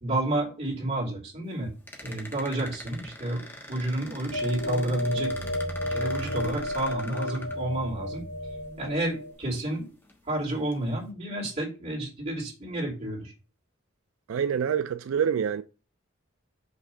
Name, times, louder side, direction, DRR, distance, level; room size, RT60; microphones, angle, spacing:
voice 1, 0.0-1.7 2.0-3.4 3.7-5.5 5.8-8.2 8.8-9.9 10.3-13.3, right 1 dB, 30° right, 2.8 m, -30 dB
sound 1, 1.9-8.1 9.0-9.1 9.6-10.2 10.7-10.9, left 1 dB, 10° left, 1.1 m, -43 dB
sound 2, 4.3-9.3, left 1 dB, 60° left, 2.2 m, -32 dB
voice 2, 14.3-15.6, right 8 dB, 80° right, 0.4 m, -26 dB
5.4 x 3.6 x 5.6 m
head